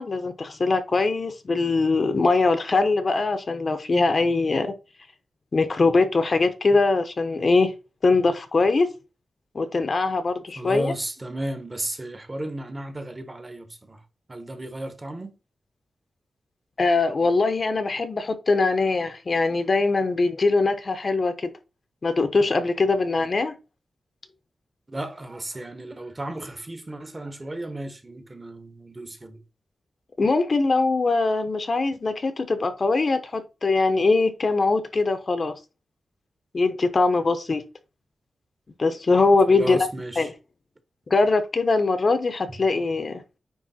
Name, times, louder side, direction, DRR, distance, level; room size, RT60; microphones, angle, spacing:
voice 1, 0.0-4.7 5.5-7.7 8.0-8.9 9.5-10.9 16.8-21.5 22.0-23.5 30.2-35.5 36.5-37.6 38.8-39.8 40.2-40.3 41.1-43.2, left 3 dB, 35° left, 0.8 m, -22 dB
voice 2, 10.6-14.0 14.3-15.3 24.9-29.4 39.5-40.3 42.5-42.6, right 1 dB, 20° right, 1.0 m, -34 dB
9.6 x 3.2 x 4.3 m
wide cardioid pair, 155°, 0 cm